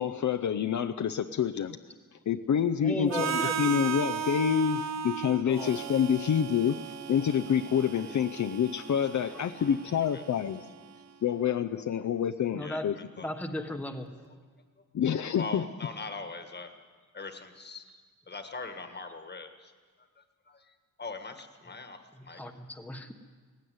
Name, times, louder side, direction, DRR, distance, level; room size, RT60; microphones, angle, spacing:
voice 1, 0.0-1.8 2.3-6.8 7.1-10.6 11.2-13.0 14.9-15.7, left 8 dB, 60° left, 7 dB, 0.6 m, -27 dB
voice 2, 2.8-3.7 5.4-5.7 12.5-12.9 13.2-14.1 22.1-23.1, left 1 dB, 5° left, 4 dB, 1.1 m, -36 dB
Harmonica, 3.1-11.0, right 8 dB, 55° right, 0.7 m, -36 dB
voice 3, 9.1-10.2 12.6-13.3 15.3-16.7 17.1-17.9 18.3-19.7 20.2-22.4, left 3 dB, 30° left, 7 dB, 1.5 m, -42 dB
18.0 x 15.5 x 9.4 m, 1.5 s
wide cardioid pair, 165°, 33 cm